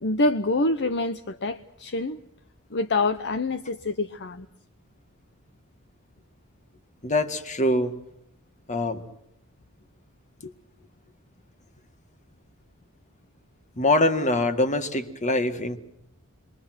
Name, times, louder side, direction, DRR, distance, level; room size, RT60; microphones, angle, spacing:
voice 1, 0.0-2.2 2.7-4.5 10.4-10.5, left 2 dB, 55° left, 0.9 m, -26 dB
voice 2, 7.0-8.0 8.7-9.0 13.8-15.8, left 2 dB, 35° left, 2.0 m, -24 dB
29.5 x 23.0 x 6.2 m
head